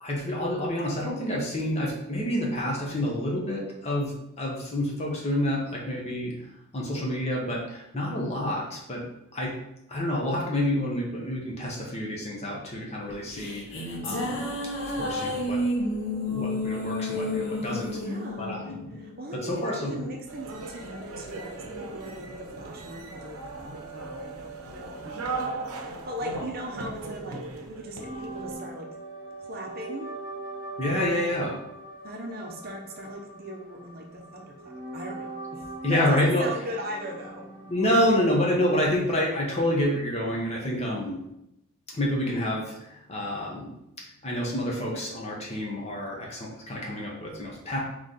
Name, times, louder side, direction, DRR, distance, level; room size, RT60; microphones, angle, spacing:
voice 1, 0.0-6.3 6.7-9.0 9.3-9.5 9.9-14.5 14.8-15.6 16.3-18.0 18.4-18.9 19.4-20.0 30.8-31.6 35.8-36.4 37.7-41.2 41.9-43.7 44.0-47.8, left 1 dB, 30° left, -2 dB, 0.9 m, -28 dB
sound 1, 13.1-19.6, left 1 dB, 60° left, 0.8 m, -31 dB
voice 2, 17.9-27.4 27.7-28.9 29.4-30.1 32.0-37.5, right 1 dB, 45° right, 2 dB, 0.6 m, -39 dB
sound 2, 20.3-28.5, right 3 dB, 90° right, 0.6 m, -38 dB
sound 3, 28.0-38.9, right 2 dB, 5° left, 1.0 m, -41 dB
3.9 x 3.1 x 3.8 m, 0.84 s
head